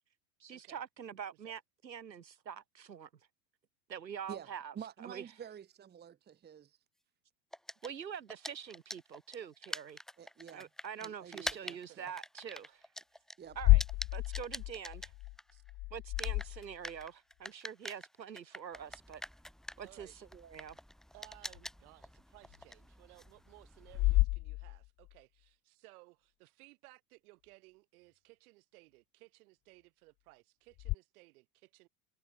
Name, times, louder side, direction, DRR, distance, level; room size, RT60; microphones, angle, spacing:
voice 1, 0.4-3.1 3.9-5.3 7.8-10.0 10.5-12.9 13.5-13.8 14.1-15.1 15.5-15.6 15.9-19.2 19.8-20.8, right 8 dB, 85° right, 3.1 m, -45 dB
voice 2, 4.7-6.8 10.2-10.7 11.0-12.1 13.4-13.6, right 8 dB, 20° right, 1.3 m, -49 dB
sound 1, 7.5-15.7 16.0-24.2, equal, ahead, 1.1 m, -46 dB
voice 3, 11.5-12.0 19.8-20.2 21.1-31.9, right 23 dB, 60° right, 6.0 m, -60 dB
sound 2, 13.5-17.0 21.5-21.6 22.5-22.6 23.9-25.2 30.8-30.9, left 22 dB, 25° left, 0.4 m, -31 dB
hypercardioid pair, 95°, 50 cm